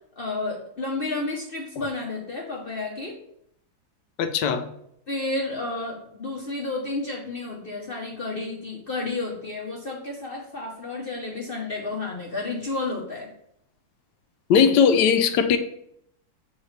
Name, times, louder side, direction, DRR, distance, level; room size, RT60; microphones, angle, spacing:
voice 1, 0.2-3.1 5.1-13.3, left 3 dB, 50° left, -2 dB, 0.7 m, -31 dB
voice 2, 4.2-4.7 14.5-15.6, left 7 dB, 75° left, 10 dB, 1.1 m, -19 dB
7.8 x 4.0 x 3.2 m, 0.73 s
omnidirectional pair, 2.1 m